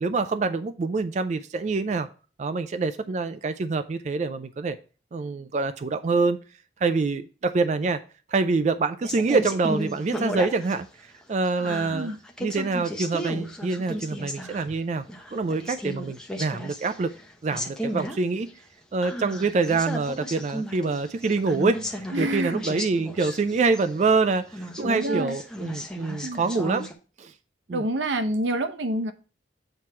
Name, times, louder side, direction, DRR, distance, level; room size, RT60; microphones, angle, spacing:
voice 1, 0.0-2.1 2.4-4.8 5.1-6.4 6.8-8.0 8.3-12.1 12.4-15.1 15.3-17.1 17.4-18.5 18.9-26.9 27.2-27.3 27.7-27.8, right 4 dB, 40° right, 0.3 m, -26 dB
sound 1, 9.0-10.8 11.2-14.7 15.1-17.2 17.5-18.2 18.5-18.6 19.0-24.1 24.5-26.9, equal, 5° left, 0.8 m, -34 dB
voice 2, 22.1-22.6 24.8-25.4 26.2-26.4 27.7-29.1, right 1 dB, 90° right, 0.7 m, -27 dB
7.7 x 3.1 x 5.5 m
head